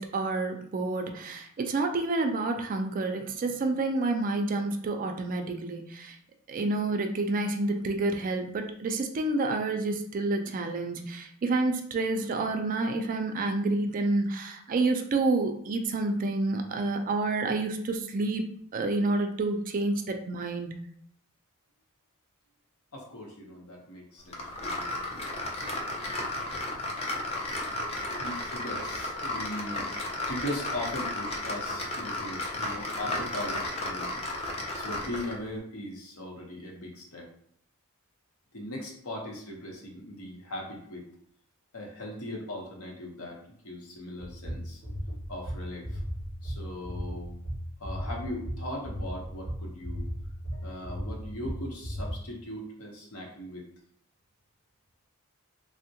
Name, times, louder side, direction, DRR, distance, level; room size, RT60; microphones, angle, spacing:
voice 1, 0.0-6.1 6.5-18.4 18.7-20.8, right 2 dB, 40° right, 5 dB, 0.3 m, -29 dB
voice 2, 22.9-25.0 25.6-25.8 28.2-29.9 30.3-34.1 34.7-37.3 38.5-41.0 41.7-44.8 45.3-46.0 46.4-47.3 47.8-50.0 50.5-53.6, left 1 dB, 80° left, 0 dB, 0.8 m, -39 dB
sound 1, 24.3-35.4, left 2 dB, 30° left, 0.4 m, -34 dB
sound 2, 44.2-52.1, equal, 45° left, 1.5 m, -35 dB
3.4 x 2.1 x 2.7 m, 0.67 s
head